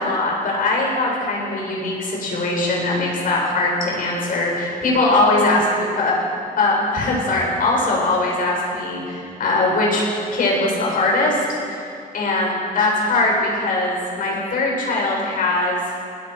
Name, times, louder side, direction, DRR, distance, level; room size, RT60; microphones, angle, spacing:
voice 1, 0.0-6.2 6.6-10.0 10.3-11.4 11.7-11.9 12.1-16.0, left 2 dB, 65° left, -3 dB, 7.7 m, -21 dB
28.5 x 19.5 x 6.3 m, 2.6 s
wide cardioid pair, 160°, 15 cm